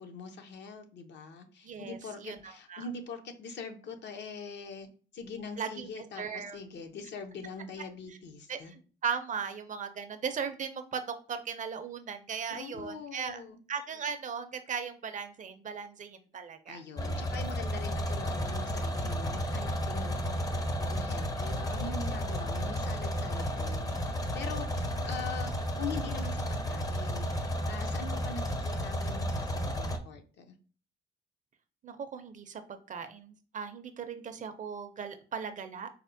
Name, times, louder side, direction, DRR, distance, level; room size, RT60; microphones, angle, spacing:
voice 1, 0.0-4.9 5.1-8.7 12.5-13.6 16.7-30.5, left 5 dB, 65° left, 6 dB, 0.6 m, -43 dB
voice 2, 1.6-2.8 5.6-5.9 6.2-6.6 8.5-11.0 11.3-13.4 13.7-16.8 24.6-25.0 31.8-35.9, right 6 dB, 40° right, 9 dB, 0.4 m, -38 dB
sound 1, 17.0-30.0, equal, 20° left, 0.5 m, -32 dB
4.1 x 2.0 x 2.5 m, 0.39 s
cardioid pair, 90°, 20 cm